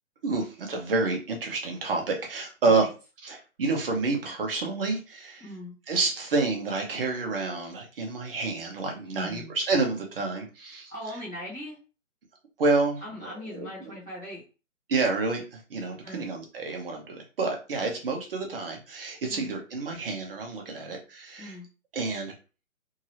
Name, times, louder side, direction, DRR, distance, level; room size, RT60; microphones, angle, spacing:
voice 1, 0.2-2.9 3.2-5.4 5.9-10.9 12.6-13.9 14.9-21.6 21.9-22.3, right 3 dB, 45° right, 2 dB, 0.9 m, -29 dB
voice 2, 5.4-5.7 9.1-9.5 10.9-11.8 13.0-14.4 16.0-16.3 17.8-17.9 19.3-19.5 21.4-21.7, left 1 dB, 10° left, -11 dB, 0.7 m, -40 dB
2.8 x 2.8 x 2.9 m, 0.32 s
hypercardioid pair, 160°, 40 cm